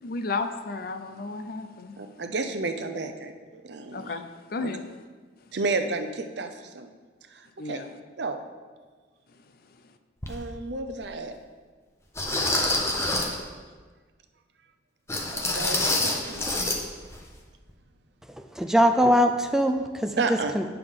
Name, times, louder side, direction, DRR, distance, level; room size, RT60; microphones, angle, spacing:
voice 1, 0.0-2.0 3.9-4.8 7.6-7.9, left 3 dB, 50° left, 0.5 m, -33 dB
voice 2, 2.0-4.1 4.6-4.7 5.5-6.9 7.3-7.8 8.2-8.4 10.3-11.3 15.3-16.7 20.2-20.5, right 3 dB, 65° right, 0.6 m, -32 dB
sound 1, 10.2-10.3 11.0-11.1 12.2-13.4 15.1-16.8 17.1-17.3 17.7-17.8, left 2 dB, 15° left, 0.7 m, -26 dB
voice 3, 18.4-20.7, equal, 5° right, 0.3 m, -22 dB
9.5 x 6.8 x 3.7 m
head